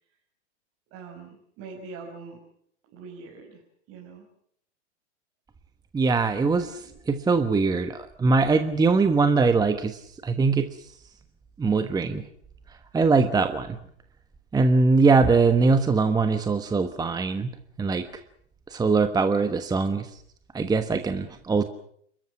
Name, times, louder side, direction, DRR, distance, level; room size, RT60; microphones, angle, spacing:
voice 1, 0.9-2.4 2.9-3.6 3.9-4.2 6.5-7.0 8.8-8.9, right 4 dB, 40° right, 0 dB, 5.7 m, -43 dB
voice 2, 5.9-6.8 7.1-10.7 11.6-12.2 12.9-13.8 14.5-17.5 17.8-18.2 18.7-20.1 20.5-21.6, right 4 dB, 10° right, 9 dB, 1.2 m, -22 dB
29.0 x 14.0 x 8.7 m, 0.67 s
hypercardioid pair, 110°, 36 cm